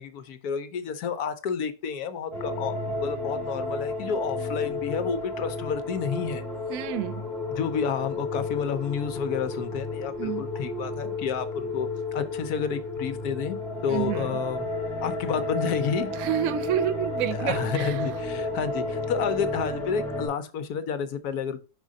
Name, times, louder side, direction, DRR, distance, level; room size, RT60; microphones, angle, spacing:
voice 1, 0.0-6.4 7.5-13.6 13.8-14.7 15.0-16.1 17.3-21.6, left 6 dB, 75° left, 1.1 m, -30 dB
sound 1, 2.3-20.3, left 2 dB, ahead, 1.9 m, -32 dB
voice 2, 6.7-7.2 10.2-10.4 13.9-14.3 16.2-17.9, right 11 dB, 70° right, 0.9 m, -29 dB
5.6 x 3.6 x 5.1 m
omnidirectional pair, 1.7 m